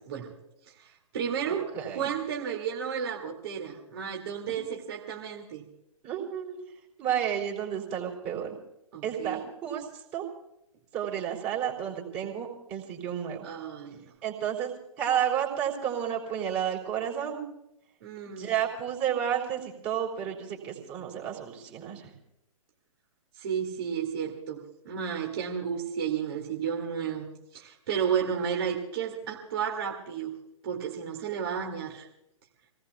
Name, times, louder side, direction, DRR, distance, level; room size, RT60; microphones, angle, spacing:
voice 1, 0.7-5.6 8.9-9.5 13.4-14.1 18.0-18.5 23.4-30.4 30.6-32.1, right 7 dB, 45° right, 0 dB, 2.5 m, -32 dB
voice 2, 1.5-2.0 6.0-6.6 7.0-8.6 9.0-10.3 10.9-13.5 14.2-14.7 15.0-17.5 18.3-22.1, right 9 dB, 25° right, -2 dB, 3.7 m, -31 dB
28.0 x 18.5 x 2.4 m, 0.83 s
figure-of-eight pair, 120°, 18 cm